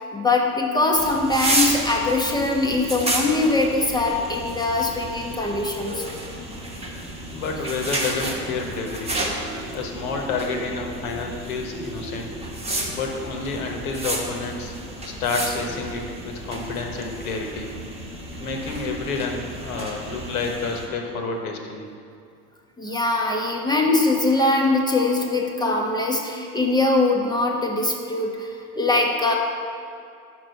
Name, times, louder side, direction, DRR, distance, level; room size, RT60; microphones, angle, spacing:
voice 1, 0.0-6.0 22.8-29.3, left 2 dB, 10° left, 0 dB, 0.6 m, -22 dB
sound 1, 0.9-20.9, right 1 dB, 15° right, 1.0 m, -31 dB
voice 2, 7.3-9.2 9.7-12.3 12.9-14.7 15.2-17.7 18.4-21.9, left 4 dB, 70° left, 2 dB, 1.0 m, -29 dB
5.9 x 4.8 x 5.3 m, 2.4 s
figure-of-eight pair, 70°, 45 cm